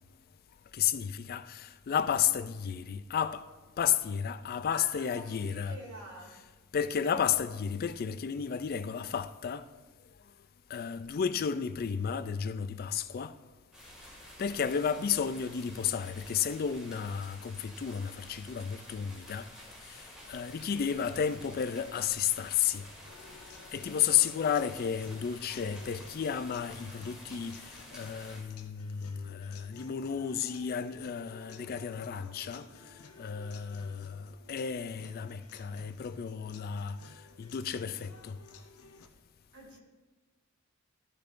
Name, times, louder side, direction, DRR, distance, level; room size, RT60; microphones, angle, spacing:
voice 1, 0.7-3.5 3.8-5.8 6.7-9.7 10.7-13.3 14.4-19.5 19.9-20.0 20.3-22.8 23.7-32.7 33.2-37.0 37.4-38.4, left 8 dB, 45° left, 0.3 m, -32 dB
voice 2, 4.7-6.4 39.5-39.8, right 1 dB, 85° right, 2.6 m, -47 dB
sound 1, 13.7-28.4, equal, 5° right, 2.1 m, -51 dB
sound 2, 23.1-39.1, left 4 dB, 80° left, 0.8 m, -55 dB
14.0 x 6.5 x 2.6 m
head